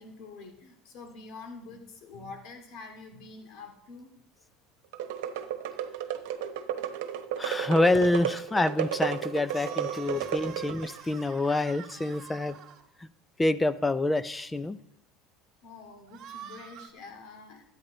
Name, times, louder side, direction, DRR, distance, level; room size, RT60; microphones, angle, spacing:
voice 1, 0.0-4.1 10.4-10.7 15.6-17.6, left 3 dB, 65° left, 4 dB, 2.4 m, -46 dB
sound 1, 4.9-11.0, right 10 dB, 85° right, 1.1 m, -33 dB
voice 2, 7.4-12.6 13.0-13.1 13.4-14.8, left 2 dB, 10° left, 14 dB, 0.5 m, -27 dB
sound 2, 9.4-12.8 16.1-16.9, right 9 dB, 55° right, 1.6 m, -46 dB
13.0 x 9.0 x 3.9 m, 0.76 s
supercardioid pair, 125°, 0 cm